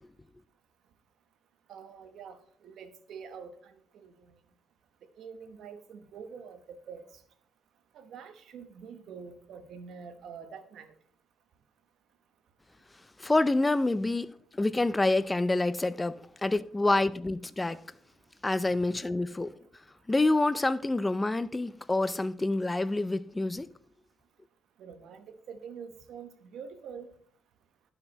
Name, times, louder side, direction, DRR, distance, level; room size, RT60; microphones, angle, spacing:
voice 1, 1.7-4.4 5.2-7.0 7.9-10.9 24.8-27.1, right 6 dB, 75° right, 1.0 m, -46 dB
voice 2, 13.2-17.8 18.4-19.5 20.1-23.7, left 2 dB, 15° left, 0.5 m, -27 dB
11.5 x 5.8 x 4.1 m
cardioid pair, 90°, 0 cm